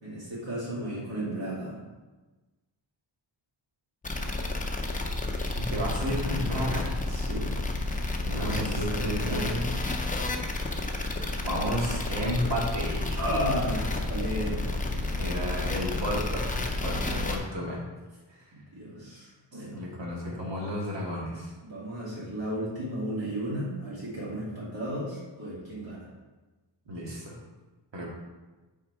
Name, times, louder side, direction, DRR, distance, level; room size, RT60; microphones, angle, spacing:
voice 1, 0.0-1.8 7.1-7.5 8.3-9.6 13.2-15.1 18.5-19.8 21.6-26.1, equal, 55° right, -8 dB, 2.4 m, -34 dB
sound 1, 4.0-17.4, left 2 dB, 20° left, 0.6 m, -31 dB
voice 2, 5.7-7.0 8.2-9.7 11.4-13.2 14.5-14.7 15.2-17.8 18.3-18.5 19.5-21.5 26.9-27.4 27.9-28.1, equal, 70° right, -3 dB, 2.0 m, -32 dB
6.0 x 4.9 x 4.7 m, 1.2 s
wide cardioid pair, 160°, 44 cm